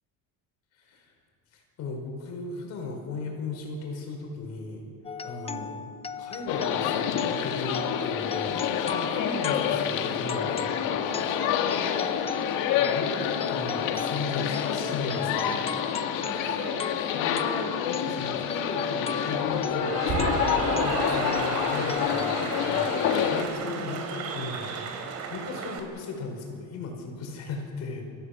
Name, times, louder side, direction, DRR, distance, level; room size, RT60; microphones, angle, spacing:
voice 1, 0.7-1.1 1.5-4.8 5.2-5.8 6.2-10.8 11.3-11.4 12.8-15.6 16.3-16.6 17.1-17.5 17.9-28.0, left 3 dB, 55° left, 2 dB, 5.5 m, -37 dB
sound 1, 5.0-22.3, left 5 dB, 20° left, 0.6 m, -37 dB
sound 2, 6.5-23.4, left 8 dB, 70° left, 1.9 m, -28 dB
voice 2, 11.4-12.2 14.7-14.9 15.4-15.6 16.2-17.0 17.4-17.8 23.4-24.0, right 6 dB, 85° right, 3 dB, 2.9 m, -44 dB
Cheering / Applause, 19.5-25.8, right 6 dB, 55° right, 3.0 m, -33 dB
29.0 x 15.0 x 8.2 m, 2.5 s
cardioid pair, 155°, 33 cm